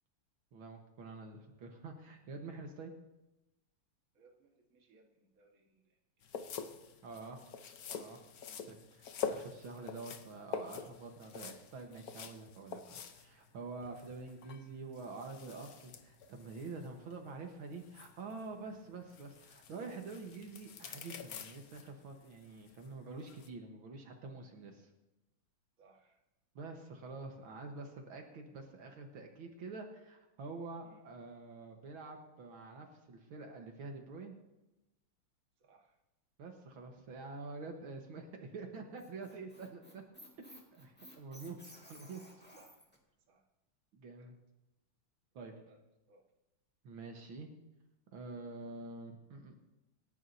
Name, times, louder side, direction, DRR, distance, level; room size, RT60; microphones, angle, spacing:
voice 1, 0.5-2.9 7.0-7.5 7.9-8.2 8.7-24.9 26.6-34.4 36.4-38.3 38.5-40.0 40.4-40.5 40.7-42.2 43.9-44.4 45.4-45.5 46.8-47.5 48.1-49.5, right 3 dB, 70° right, 3 dB, 2.1 m, -47 dB
voice 2, 4.1-6.0 8.4-8.7 25.8-26.2 30.8-31.1 35.6-36.0 40.4-40.7 42.6-42.9 43.3-43.5 44.2-44.3 45.4-45.8 46.1-46.3, right 4 dB, 40° right, 1 dB, 1.9 m, -65 dB
sound 1, 6.2-23.5, left 6 dB, 55° left, 1.1 m, -47 dB
Whoosh swoosh swish, 12.3-17.4, left 2 dB, 90° left, 2.7 m, -68 dB
Squeak, 38.7-43.0, equal, 5° left, 1.8 m, -56 dB
27.0 x 11.0 x 2.7 m, 0.98 s
omnidirectional pair, 2.4 m